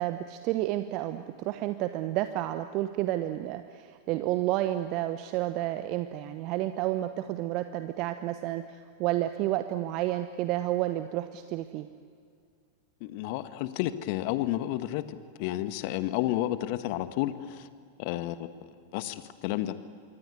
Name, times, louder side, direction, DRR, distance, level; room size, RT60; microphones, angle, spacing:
voice 1, 0.0-11.9, right 14 dB, 40° right, 10 dB, 1.0 m, -30 dB
voice 2, 13.0-17.7 18.0-18.5 18.9-19.7, left 14 dB, 45° left, 12 dB, 1.4 m, -31 dB
26.5 x 23.5 x 9.5 m, 2.3 s
figure-of-eight pair, 90°, 0 cm